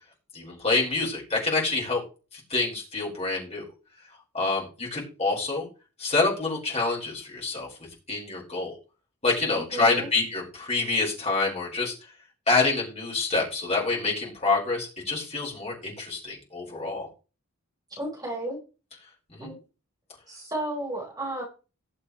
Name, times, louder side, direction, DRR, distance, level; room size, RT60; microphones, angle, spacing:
voice 1, 0.3-2.0 2.3-3.6 4.3-5.7 6.0-7.7 8.1-8.8 9.2-11.9 12.5-17.1 19.3-19.5, left 3 dB, 30° left, -3 dB, 5.3 m, -27 dB
voice 2, 9.5-10.1 17.9-18.6 19.4-19.6 20.3-21.4, right 1 dB, 15° right, -3 dB, 4.3 m, -33 dB
19.0 x 6.7 x 3.3 m, 0.34 s
head